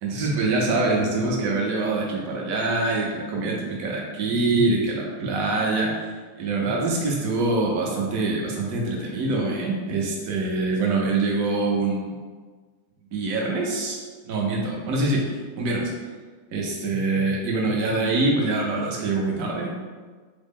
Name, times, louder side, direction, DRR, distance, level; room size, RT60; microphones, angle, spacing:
voice 1, 0.0-5.9 6.4-12.2 13.1-14.0 14.2-15.3 15.6-15.9 16.5-19.9, right 3 dB, 65° right, -2 dB, 1.0 m, -24 dB
3.6 x 2.0 x 3.5 m, 1.5 s
omnidirectional pair, 1.7 m